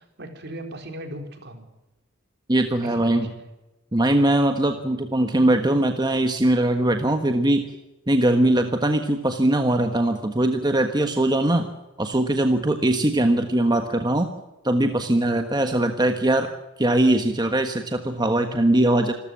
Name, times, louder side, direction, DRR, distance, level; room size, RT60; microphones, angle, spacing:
voice 1, 0.0-1.7 2.8-3.5, right 1 dB, 60° right, 5 dB, 4.2 m, -38 dB
voice 2, 2.5-3.3 3.9-7.6 8.1-11.7 12.0-14.3 14.6-16.5 16.8-19.1, right 1 dB, 20° right, 6 dB, 1.4 m, -21 dB
27.0 x 14.5 x 7.6 m, 1.0 s
head